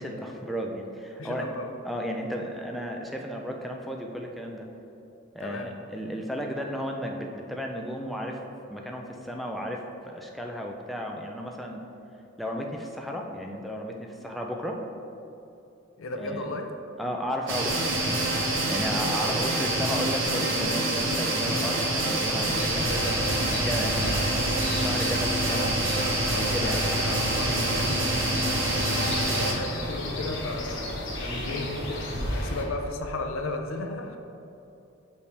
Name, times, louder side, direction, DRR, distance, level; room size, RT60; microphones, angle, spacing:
voice 1, 0.0-1.5 1.8-4.7 5.3-8.4 8.7-11.8 12.4-14.8 16.2-16.4 17.0-18.4 18.7-25.7 26.4-26.8 31.3-31.5, equal, ahead, 0 dB, 0.4 m, -34 dB
voice 2, 1.2-1.7 5.4-5.7 16.0-16.7 26.3-28.1 28.7-34.2, left 2 dB, 85° left, 5 dB, 0.6 m, -35 dB
sound 1, 17.5-29.5, right 1 dB, 70° right, 1.0 m, -26 dB
sound 2, 22.4-32.6, left 1 dB, 70° left, 1.1 m, -33 dB
6.7 x 5.3 x 3.3 m, 2.8 s
head